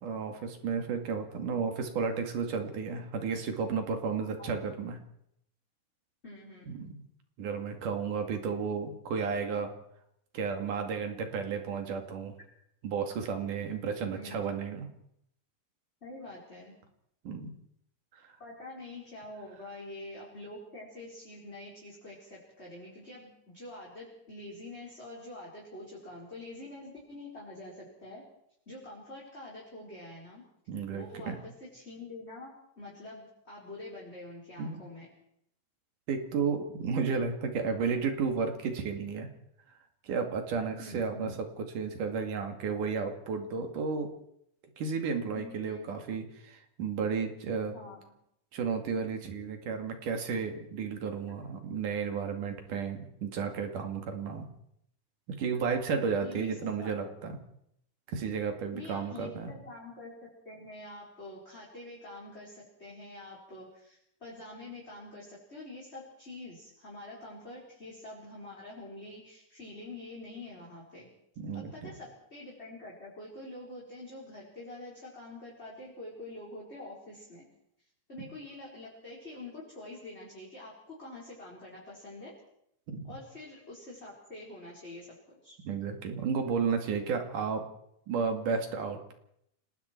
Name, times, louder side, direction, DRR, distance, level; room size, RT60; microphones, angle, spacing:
voice 1, 0.0-5.0 6.7-7.0 7.4-9.7 10.3-12.3 12.8-14.9 17.2-17.5 18.1-18.3 30.7-31.4 34.6-34.8 36.1-39.3 40.0-44.1 44.8-47.7 48.5-54.5 55.4-57.4 58.1-59.5 71.4-71.9 82.9-83.1 85.6-87.6 88.1-89.1, right 5 dB, 80° right, 5 dB, 3.9 m, -33 dB
voice 2, 4.4-4.7 6.2-6.9 14.1-14.4 16.0-16.7 18.4-28.2 28.7-30.4 30.9-35.1 40.8-41.4 45.3-46.0 47.7-48.0 56.2-57.1 58.7-71.1 71.5-77.4 78.1-82.3 83.0-85.1 85.4-85.6, left 2 dB, 20° left, -5 dB, 4.9 m, -46 dB
28.5 x 20.0 x 4.6 m, 0.74 s
omnidirectional pair, 3.6 m